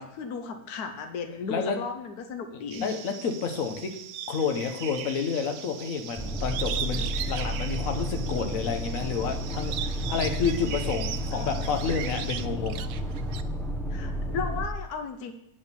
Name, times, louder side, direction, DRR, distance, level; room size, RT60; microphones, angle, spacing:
voice 1, 0.0-2.9 11.3-11.9 13.9-15.3, left 5 dB, 85° left, 7 dB, 1.4 m, -35 dB
sound 1, 2.7-12.5, right 9 dB, 65° right, 0.9 m, -42 dB
voice 2, 2.8-3.9 4.3-12.8, left 6 dB, 65° left, 4 dB, 1.4 m, -30 dB
sound 2, 6.2-14.7, equal, ahead, 0.7 m, -32 dB
Bird, 6.5-8.5 8.9-13.4, right 10 dB, 85° right, 1.1 m, -37 dB
8.7 x 5.4 x 6.8 m, 0.77 s
omnidirectional pair, 1.6 m